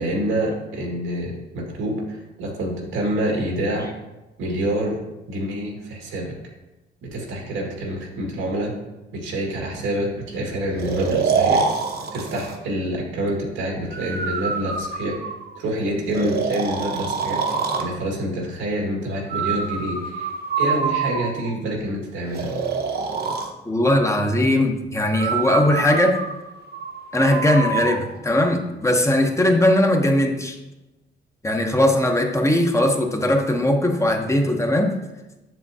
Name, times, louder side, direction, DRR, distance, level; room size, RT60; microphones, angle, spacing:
voice 1, 0.0-3.9 4.4-5.0 5.3-6.3 7.0-8.7 9.1-11.6 12.1-15.2 15.6-20.3 20.6-22.5, right 1 dB, 90° right, 0 dB, 2.0 m, -27 dB
Breathing, 10.8-12.6 13.9-15.6 16.1-17.9 19.3-21.6 22.3-23.5 25.1-28.0, right 5 dB, 50° right, 1.0 m, -26 dB
voice 2, 23.7-26.2 27.1-30.6 31.4-34.9, left 1 dB, 15° left, 3 dB, 0.9 m, -19 dB
7.6 x 6.9 x 2.8 m, 1.0 s
cardioid pair, 90°, 20 cm